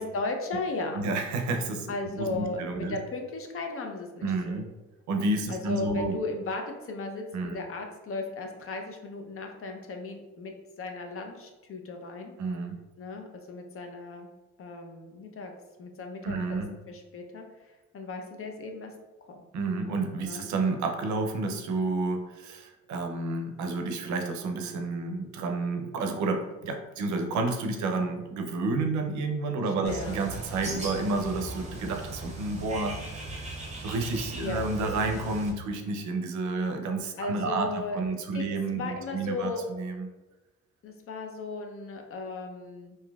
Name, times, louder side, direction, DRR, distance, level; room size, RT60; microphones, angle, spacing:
voice 1, 0.0-1.0 1.9-4.6 5.5-12.3 13.0-14.3 14.6-15.5 15.8-18.9 19.3-19.4 20.2-20.4 29.8-30.2 34.4-34.7 37.2-38.0 38.3-38.5 38.7-39.6 40.8-43.0, left 3 dB, 45° left, 3 dB, 0.6 m, -36 dB
voice 2, 0.9-3.0 4.2-4.7 5.1-6.1 7.3-7.6 12.4-12.8 16.2-16.7 19.5-40.1, right 3 dB, 70° right, 4 dB, 0.5 m, -30 dB
Bird, 29.9-35.5, right 2 dB, 25° right, 0.8 m, -38 dB
3.7 x 2.6 x 2.2 m, 1.1 s
cardioid pair, 90°, 30 cm